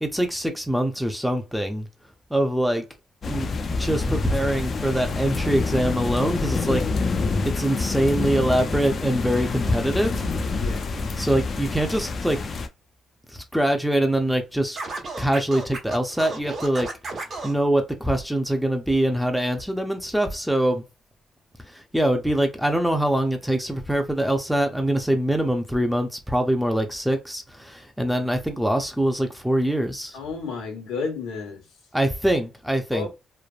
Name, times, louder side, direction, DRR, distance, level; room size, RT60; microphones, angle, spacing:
voice 1, 0.0-1.9 2.3-2.9 3.3-3.5 3.8-6.8 7.4-10.3 11.2-12.4 13.3-14.8 15.2-16.9 17.4-20.8 21.7-30.2 31.9-33.1, right 1 dB, ahead, 0.6 m, -23 dB
sound 1, 3.2-12.7, left 4 dB, 45° left, 0.4 m, -27 dB
voice 2, 10.6-10.9 30.1-31.6 32.9-33.1, left 4 dB, 90° left, 1.1 m, -31 dB
Scratching (performance technique), 14.8-17.6, right 3 dB, 50° right, 1.0 m, -33 dB
3.2 x 2.0 x 2.4 m
cardioid pair, 90°, 0 cm